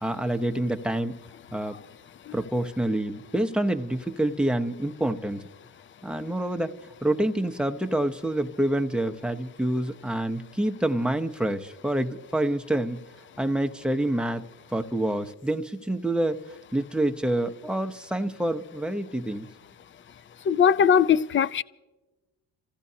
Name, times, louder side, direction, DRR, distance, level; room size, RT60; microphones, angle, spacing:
voice 1, 0.0-1.2 1.5-1.8 2.3-5.4 6.0-6.7 7.0-13.0 13.4-14.5 14.7-16.4 16.7-19.5, right 1 dB, ahead, 0.8 m, -27 dB
voice 2, 20.5-21.6, left 7 dB, 30° left, 0.4 m, -20 dB
29.0 x 15.0 x 2.8 m
cardioid pair, 85°, 40 cm